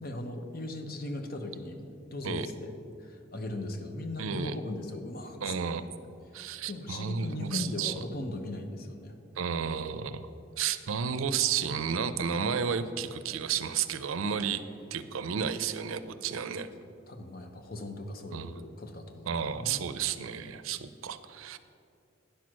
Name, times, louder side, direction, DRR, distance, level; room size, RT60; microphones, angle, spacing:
voice 1, 0.0-2.7 3.0-5.5 6.3-9.1 16.2-16.3 16.8-19.9, left 2 dB, 45° left, 6 dB, 0.8 m, -38 dB
voice 2, 4.2-4.6 5.4-5.8 6.3-7.9 9.4-10.3 10.6-14.7 14.9-16.7 18.3-18.6 19.3-21.6, right 7 dB, 85° right, 12 dB, 0.5 m, -32 dB
10.0 x 6.2 x 6.2 m, 2.6 s
head